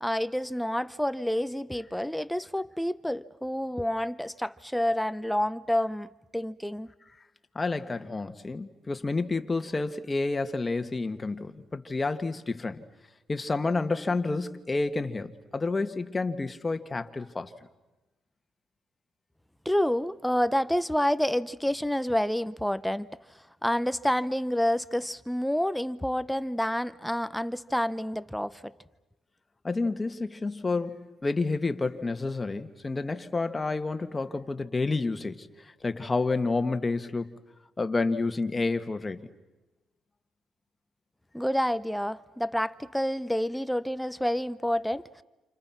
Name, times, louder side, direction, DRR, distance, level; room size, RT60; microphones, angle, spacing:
voice 1, 0.0-6.9 19.6-23.1 23.6-28.7 41.3-45.2, equal, 5° left, 0.8 m, -28 dB
voice 2, 7.6-12.8 13.3-17.5 29.6-37.3 37.8-39.3, left 3 dB, 25° left, 1.9 m, -29 dB
29.5 x 29.0 x 6.0 m
cardioid pair, 90°, 0 cm